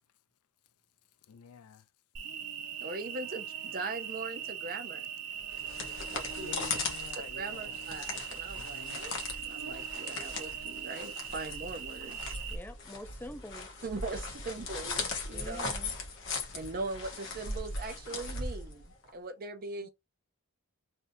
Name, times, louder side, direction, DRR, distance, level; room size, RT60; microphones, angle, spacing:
voice 1, 1.3-1.8 6.4-7.9 8.5-9.0, left 6 dB, 75° left, 0.4 m, -49 dB
Cricket, 2.2-12.6, right 8 dB, 90° right, 0.8 m, -40 dB
voice 2, 2.8-5.1 6.1-6.6 7.4-12.3 13.8-15.7 16.5-18.8 19.1-19.9, right 3 dB, 40° right, 0.6 m, -40 dB
sound 1, 5.4-19.1, left 3 dB, 60° left, 1.1 m, -39 dB
voice 3, 12.5-13.7 15.3-15.9, left 1 dB, 10° left, 0.4 m, -45 dB
3.4 x 2.7 x 2.6 m
head